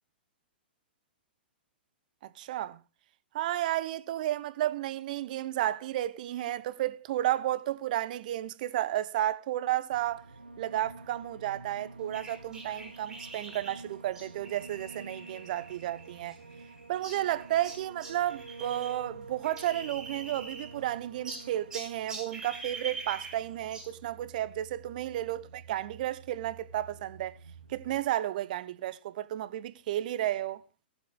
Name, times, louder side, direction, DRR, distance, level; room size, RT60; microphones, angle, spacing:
voice 1, 2.2-2.8 3.3-10.3 10.6-16.4 16.9-27.4 27.7-30.6, right 13 dB, 50° right, 0.8 m, -32 dB
sound 1, 9.9-28.0, right 3 dB, 85° right, 1.4 m, -49 dB
sound 2, 12.1-19.0 19.2-20.9 21.2-24.0, right 3 dB, 10° right, 4.6 m, -44 dB
17.0 x 7.4 x 3.7 m
figure-of-eight pair, 110°, 6 cm